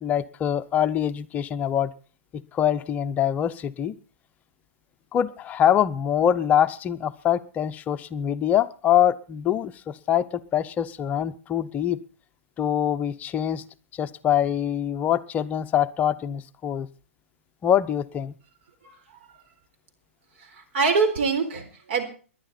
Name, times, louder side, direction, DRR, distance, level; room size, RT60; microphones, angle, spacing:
voice 1, 0.0-1.9 2.3-4.0 5.1-12.0 12.6-13.6 13.9-16.9 17.6-18.3, left 10 dB, 20° left, 12 dB, 0.7 m, -24 dB
voice 2, 20.4-22.0, right 4 dB, 55° right, 6 dB, 4.2 m, -24 dB
20.0 x 11.0 x 4.2 m, 0.39 s
hypercardioid pair, 125°, 7 cm